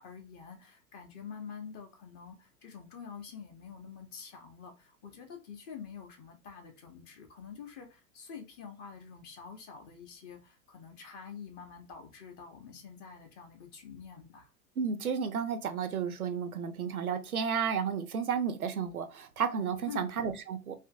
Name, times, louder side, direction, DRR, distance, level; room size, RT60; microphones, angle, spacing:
voice 1, 0.0-14.5 19.8-20.1, left 6 dB, 25° left, 0.5 m, -47 dB
voice 2, 14.8-20.8, right 6 dB, 85° right, 0.6 m, -32 dB
2.6 x 2.5 x 2.3 m
figure-of-eight pair, 100°, 42 cm